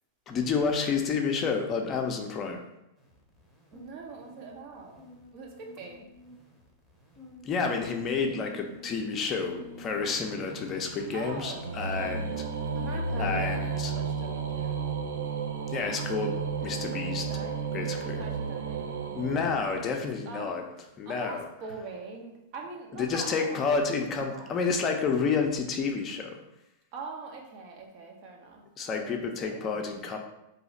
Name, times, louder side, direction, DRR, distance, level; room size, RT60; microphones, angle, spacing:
voice 1, 0.3-2.6 7.4-12.5 13.2-13.9 15.7-17.2 17.7-18.2 19.1-20.6 21.0-21.5 23.0-26.4 28.8-30.2, left 5 dB, 30° left, 3 dB, 0.5 m, -30 dB
sound 1, 3.0-11.4, equal, 10° right, 0.9 m, -50 dB
voice 2, 3.7-5.0 5.3-6.1 11.1-11.7 12.7-14.8 16.8-17.6 18.0-20.6 21.0-23.7 24.3-24.7 26.9-28.7 28.9-30.2, right 3 dB, 50° right, 1 dB, 0.8 m, -43 dB
sound 2, 9.3-20.3, right 5 dB, 90° right, 0.4 m, -33 dB
2.8 x 2.3 x 4.1 m, 0.86 s
hypercardioid pair, 115°, 0 cm